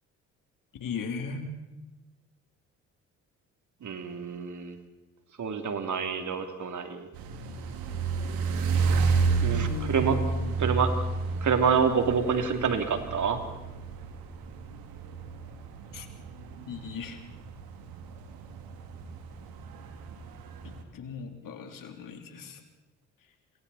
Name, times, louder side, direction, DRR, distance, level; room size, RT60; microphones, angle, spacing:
voice 1, 0.8-1.5 9.4-10.7 15.9-16.1 16.7-17.2 20.6-22.6, left 4 dB, 65° left, 5 dB, 3.4 m, -37 dB
voice 2, 3.8-4.8 5.4-7.1 9.4-10.1 10.6-10.9 11.4-13.4, right 6 dB, 55° right, 6 dB, 3.1 m, -27 dB
sound 1, 7.1-20.8, right 4 dB, 75° right, 2.5 m, -31 dB
28.5 x 23.5 x 4.3 m, 1.1 s
hypercardioid pair, 50°, 35 cm